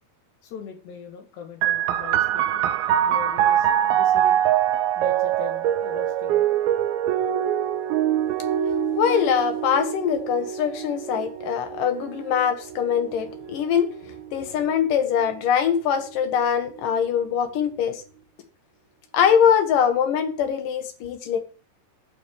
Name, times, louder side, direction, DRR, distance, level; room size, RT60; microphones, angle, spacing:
voice 1, 0.4-2.7 3.0-4.4 5.0-6.6, left 7 dB, 85° left, 4.4 m, -41 dB
sound 1, 1.6-14.8 15.7-16.5, right 11 dB, 75° right, 2.5 m, -24 dB
voice 2, 8.9-13.9 14.3-18.0 19.1-21.4, left 8 dB, 65° left, 2.7 m, -22 dB
10.5 x 6.4 x 6.9 m
omnidirectional pair, 4.7 m